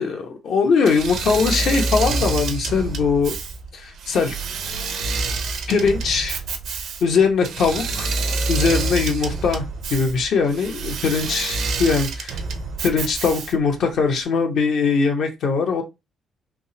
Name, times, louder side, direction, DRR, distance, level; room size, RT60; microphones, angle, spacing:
voice 1, 0.0-3.4 3.7-4.3 5.7-6.4 7.0-8.1 8.5-12.4 12.8-15.8, left 5 dB, 70° left, 0.9 m, -21 dB
Engine / Mechanisms, 0.8-13.7, right 3 dB, 75° right, 0.5 m, -27 dB
3.5 x 2.0 x 2.7 m
cardioid pair, 90°, 0 cm